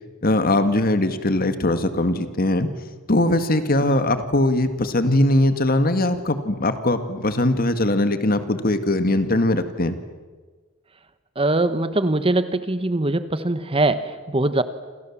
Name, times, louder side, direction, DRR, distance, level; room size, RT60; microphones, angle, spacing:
voice 1, 0.2-2.7 3.1-10.0, left 1 dB, 45° left, 10 dB, 1.9 m, -20 dB
voice 2, 11.4-14.6, right 2 dB, 25° right, 12 dB, 1.2 m, -22 dB
29.5 x 27.5 x 7.4 m, 1.4 s
head